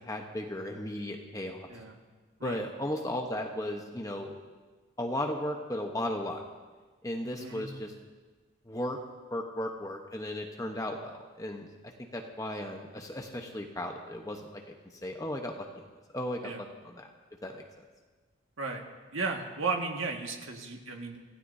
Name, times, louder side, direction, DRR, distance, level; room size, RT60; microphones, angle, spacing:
voice 1, 0.0-1.7 2.4-4.4 5.0-6.4 7.0-7.9 8.6-9.0 9.3-11.7 12.1-14.6 15.0-15.9 16.1-17.1 17.4-17.6, left 1 dB, 15° left, 2 dB, 1.0 m, -35 dB
voice 2, 7.4-7.7 16.4-16.6 18.6-18.8 19.1-21.2, right 4 dB, 85° right, 1 dB, 1.8 m, -34 dB
26.5 x 16.0 x 2.8 m, 1.3 s
head